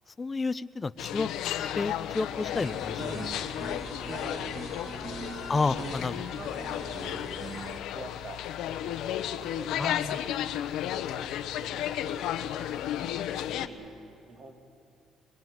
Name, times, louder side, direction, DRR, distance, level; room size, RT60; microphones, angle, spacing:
voice 1, 0.2-1.3 1.8-3.3 5.5-6.3 9.8-10.2, left 4 dB, 30° left, 13 dB, 0.7 m, -30 dB
sound 1, 1.0-13.7, left 11 dB, 80° left, 1.0 m, -33 dB
sound 2, 2.5-7.8, right 3 dB, 30° right, 1.6 m, -41 dB
voice 2, 4.6-5.9 6.2-7.3 7.9-8.4 8.8-10.2 11.5-12.2 12.6-14.0 14.3-14.6, right 3 dB, 55° right, 2 dB, 4.2 m, -49 dB
24.0 x 20.5 x 9.2 m, 2.7 s
cardioid pair, 85°, 0 cm